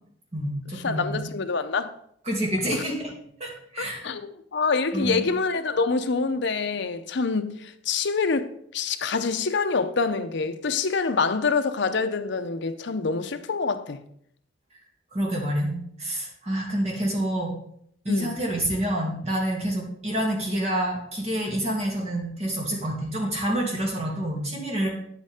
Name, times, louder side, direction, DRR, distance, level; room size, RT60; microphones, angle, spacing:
voice 1, 0.3-1.2 2.3-3.1 3.4-4.1 4.9-5.2 15.1-17.5 18.0-24.9, right 1 dB, 35° right, 2.6 m, -28 dB
voice 2, 0.8-1.9 2.7-2.8 3.8-14.0 18.1-18.4, left 4 dB, 65° left, 0.7 m, -26 dB
9.0 x 8.0 x 3.6 m
head